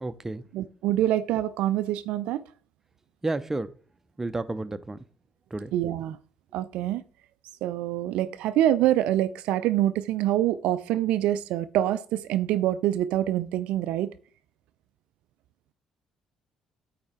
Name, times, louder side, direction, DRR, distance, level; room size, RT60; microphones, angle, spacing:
voice 1, 0.0-0.4 3.2-3.7 4.2-5.0 5.5-5.7, right 2 dB, 15° right, 12 dB, 0.6 m, -31 dB
voice 2, 0.5-2.4 5.7-6.2 6.5-7.0 7.6-14.1, right 13 dB, 60° right, 13 dB, 0.4 m, -25 dB
8.6 x 4.3 x 4.5 m, 0.43 s
figure-of-eight pair, 45°, 2 cm